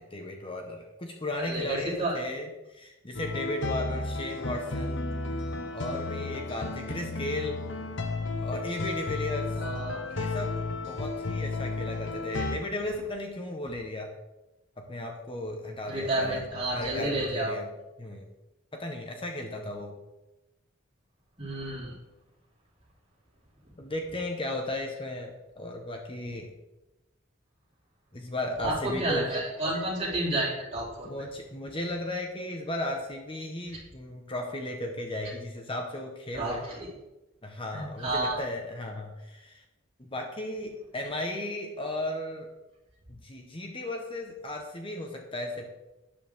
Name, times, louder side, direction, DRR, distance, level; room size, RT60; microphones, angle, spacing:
voice 1, 0.0-5.1 5.7-7.6 8.4-9.6 10.1-10.5 10.9-14.1 14.9-16.4 16.7-17.7 18.0-18.3 18.7-19.9 23.8-26.5 28.1-29.2 31.0-36.7 37.4-39.6 40.0-42.5 43.1-45.6, left 1 dB, 25° left, 2 dB, 1.2 m, -35 dB
voice 2, 1.4-2.1 9.5-10.1 15.9-17.6 21.4-21.9 28.6-31.1 36.3-36.9 37.7-38.4, right 1 dB, 30° right, -5 dB, 4.1 m, -30 dB
sound 1, 3.1-12.6, left 3 dB, 65° left, 1.1 m, -33 dB
12.5 x 10.0 x 3.7 m, 0.98 s
head